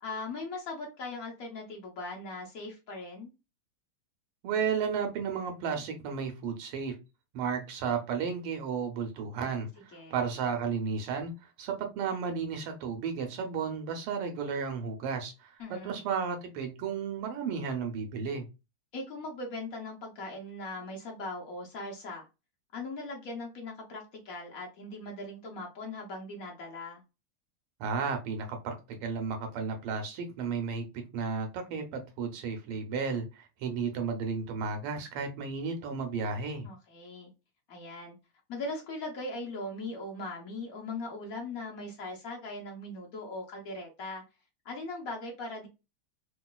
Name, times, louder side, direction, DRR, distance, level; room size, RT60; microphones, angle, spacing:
voice 1, 0.0-3.3 9.9-10.2 15.6-16.0 18.9-22.3 22.7-27.0 36.6-37.3 37.7-38.1 38.5-44.2 44.6-45.7, left 2 dB, 60° left, 1.0 m, -39 dB
voice 2, 4.4-6.9 7.3-11.3 11.6-18.5 27.8-30.9 31.1-36.7, right 5 dB, 85° right, 1.7 m, -33 dB
3.8 x 2.4 x 2.2 m
omnidirectional pair, 2.3 m